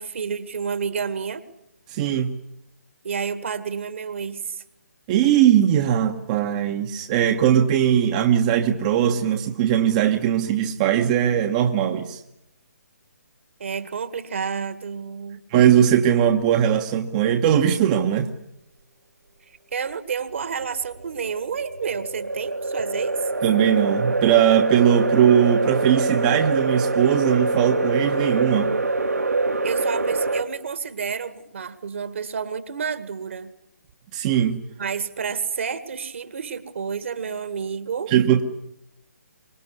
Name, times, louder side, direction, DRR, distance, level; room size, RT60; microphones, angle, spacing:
voice 1, 0.0-1.4 3.0-4.6 13.6-15.4 19.7-23.2 29.6-33.5 34.8-38.1, right 6 dB, 50° right, 12 dB, 2.1 m, -30 dB
voice 2, 1.9-2.4 5.1-12.2 15.5-18.3 23.4-28.7 34.1-34.6 38.1-38.4, right 9 dB, 25° right, 5 dB, 1.2 m, -19 dB
sound 1, 20.6-30.4, right 3 dB, 70° right, 2.1 m, -25 dB
25.5 x 22.0 x 9.8 m, 0.80 s
figure-of-eight pair, 135°, 9 cm